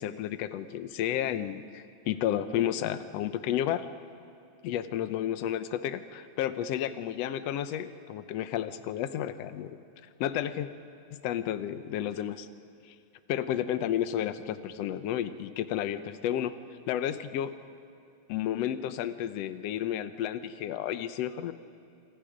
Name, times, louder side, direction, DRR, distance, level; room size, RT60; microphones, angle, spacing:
voice 1, 0.0-3.9 4.6-9.8 10.2-10.7 11.1-12.5 12.9-13.0 13.3-16.5 16.9-17.5 18.3-21.5, left 11 dB, 70° left, 11 dB, 1.8 m, -32 dB
27.0 x 25.5 x 5.1 m, 2.6 s
omnidirectional pair, 3.4 m